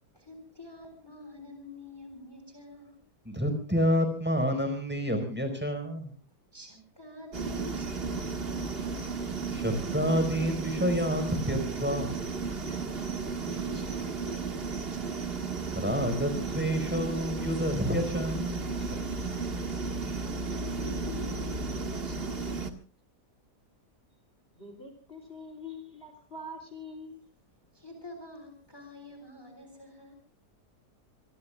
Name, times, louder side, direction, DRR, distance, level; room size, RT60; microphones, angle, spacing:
voice 1, 0.1-3.0 6.5-9.1 12.7-15.4 20.0-22.6 27.7-30.2, left 1 dB, 15° left, 5 dB, 3.7 m, -46 dB
voice 2, 3.2-6.1 9.5-12.3 15.7-19.1, equal, 5° right, 7 dB, 4.6 m, -29 dB
sound 1, 7.3-22.7, right 4 dB, 35° right, 1.9 m, -34 dB
voice 3, 24.6-27.2, left 2 dB, 35° left, 6 dB, 3.5 m, -44 dB
25.5 x 23.0 x 2.3 m, 0.38 s
omnidirectional pair, 1.8 m